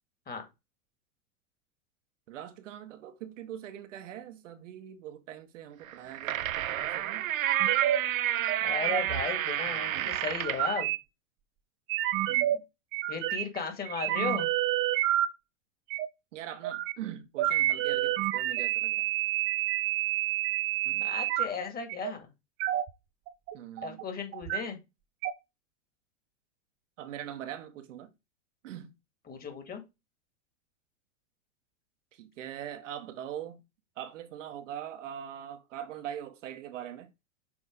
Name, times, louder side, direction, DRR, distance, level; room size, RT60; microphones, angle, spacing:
voice 1, 2.3-7.3 9.9-10.1 12.3-12.6 16.3-19.1 20.8-21.1 23.5-24.0 27.0-28.1 28.6-29.0 32.1-33.6 34.0-37.1, right 10 dB, 65° right, 1.1 m, -42 dB
sound 1, 5.9-10.7, right 12 dB, 85° right, 0.6 m, -30 dB
sound 2, 7.5-8.0 8.3-8.6 8.8-9.2 10.1-11.0 11.9-12.6 12.9-13.6 13.9-15.3 15.9-16.1 16.6-16.9 17.4-21.5 21.9-22.1 22.6-22.9 23.3-24.0 24.3-24.6 25.2-25.3, right 14 dB, 30° right, 0.6 m, -29 dB
voice 2, 8.6-10.9 13.1-14.5 21.0-22.3 23.8-24.8 29.3-29.8, left 5 dB, 25° left, 2.0 m, -35 dB
6.3 x 4.4 x 3.7 m
hypercardioid pair, 100°, 40 cm